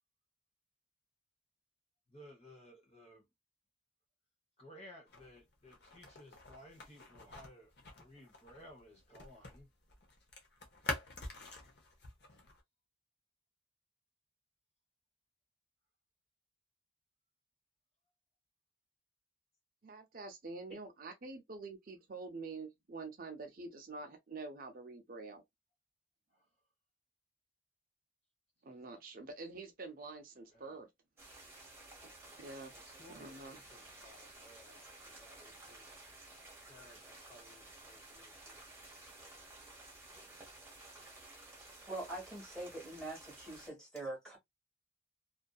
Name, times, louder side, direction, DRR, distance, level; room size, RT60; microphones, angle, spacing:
voice 1, 2.1-3.3 4.6-9.7 26.3-26.5 30.5-30.8 32.6-36.1 36.6-38.6, equal, 35° left, 1.0 m, -58 dB
sound 1, 5.1-9.6 9.9-12.6, left 2 dB, 60° left, 0.8 m, -46 dB
voice 2, 19.8-25.4 28.6-30.9 32.4-32.7 33.1-33.6, right 3 dB, 45° right, 0.5 m, -47 dB
sound 2, 31.2-43.7, right 2 dB, 15° right, 0.9 m, -54 dB
voice 3, 41.9-44.4, right 2 dB, 5° left, 1.4 m, -43 dB
2.6 x 2.5 x 2.3 m
head